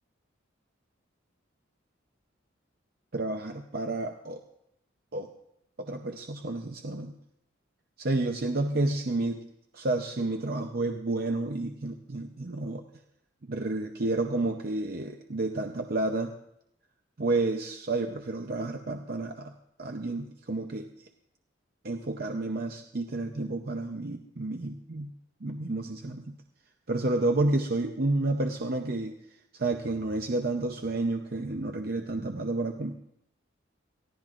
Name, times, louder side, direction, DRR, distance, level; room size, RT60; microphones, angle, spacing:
voice 1, 3.1-4.4 5.1-5.3 5.8-7.2 8.0-9.4 9.7-12.8 13.4-16.3 17.2-19.5 19.8-20.9 21.8-25.1 25.4-26.3 26.9-29.2 29.5-33.0, right 2 dB, 50° right, 4 dB, 0.7 m, -30 dB
22.5 x 15.0 x 2.5 m, 0.77 s
head